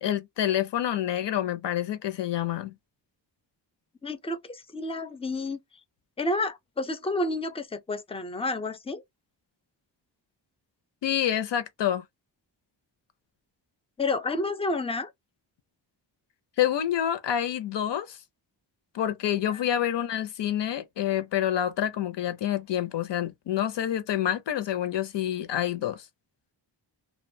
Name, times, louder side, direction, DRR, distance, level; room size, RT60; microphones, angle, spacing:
voice 1, 0.0-2.7 11.0-12.0 16.6-18.2 18.9-26.1, left 11 dB, 65° left, 0.6 m, -27 dB
voice 2, 4.0-5.6 6.2-9.0 14.0-15.1 19.3-19.6, left 2 dB, 15° left, 0.4 m, -30 dB
2.4 x 2.2 x 2.6 m
wide cardioid pair, 90°, 45 cm